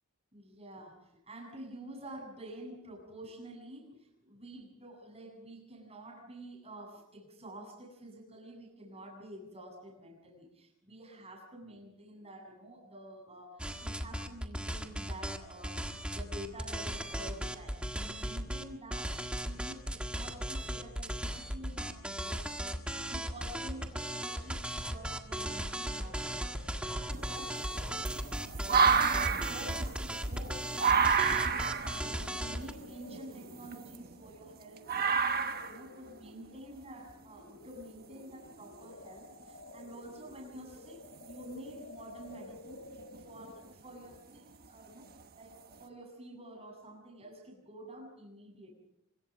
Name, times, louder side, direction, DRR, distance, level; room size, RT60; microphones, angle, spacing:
voice 1, 0.3-26.8 27.3-27.6 28.4-31.5 31.9-42.8 43.2-48.7, right 1 dB, 30° right, 1 dB, 7.8 m, -49 dB
sound 1, 13.6-18.6 18.9-32.7, equal, 5° right, 1.6 m, -37 dB
sound 2, 26.0-43.6, left 2 dB, 60° left, 3.4 m, -54 dB
sound 3, 27.1-34.5 34.9-35.8 37.1-37.2 38.5-38.6 41.3-41.5 42.0-42.3 42.9-43.5 44.1-44.2 45.2-45.3 45.7-45.8, right 6 dB, 45° right, 1.2 m, -30 dB
25.0 x 22.0 x 5.3 m, 0.83 s
head